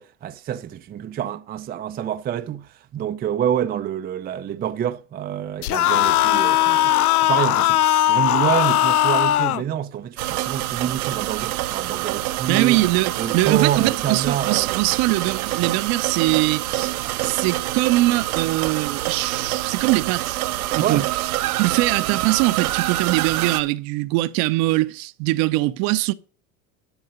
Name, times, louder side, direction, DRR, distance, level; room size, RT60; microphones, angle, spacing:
voice 1, 0.0-12.8 13.2-15.0 20.8-21.1, right 10 dB, 20° right, 0.5 m, -27 dB
sound 1, 5.6-9.6, left 13 dB, 90° left, 0.6 m, -18 dB
sound 2, 10.2-23.6, right 15 dB, 80° right, 0.9 m, -26 dB
voice 2, 12.5-17.0 17.2-20.4 20.7-21.0 21.6-26.1, right 19 dB, 55° right, 0.8 m, -22 dB
11.5 x 6.3 x 5.0 m
hypercardioid pair, 95°, 43 cm